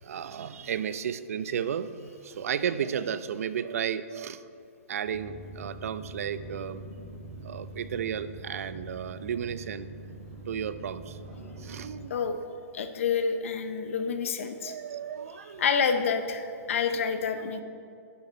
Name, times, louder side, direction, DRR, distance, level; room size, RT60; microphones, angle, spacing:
voice 1, 0.0-4.5 4.9-6.8 7.4-9.9 10.5-11.2 11.6-12.2 14.6-15.6, right 8 dB, 65° right, 14 dB, 0.4 m, -33 dB
sound 1, 5.1-12.1, right 2 dB, 5° right, 1.8 m, -43 dB
voice 2, 12.7-14.7 15.6-17.6, left 6 dB, 55° left, 8 dB, 0.8 m, -28 dB
11.0 x 6.5 x 4.4 m, 2.5 s
hypercardioid pair, 165°, 8 cm